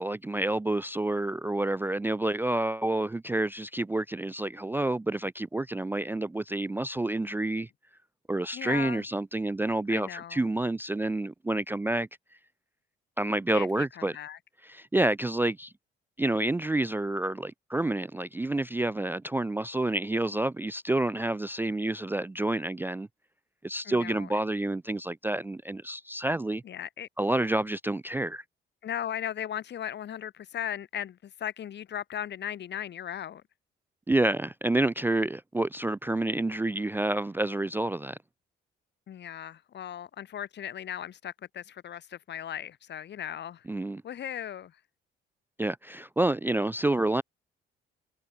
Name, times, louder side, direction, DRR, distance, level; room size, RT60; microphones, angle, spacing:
voice 1, 0.0-7.7 8.3-12.1 13.2-14.2 14.6-15.7 16.2-23.1 23.6-26.6 27.2-28.4 34.1-38.2 43.7-44.0 45.6-47.2, right 2 dB, 10° right, 0.4 m, -29 dB
voice 2, 8.5-9.0 9.9-10.5 13.5-14.4 23.9-24.3 26.6-27.1 28.8-33.4 39.1-43.6 44.0-44.7, left 10 dB, 60° left, 1.9 m, -37 dB
cardioid pair, 90°, 20 cm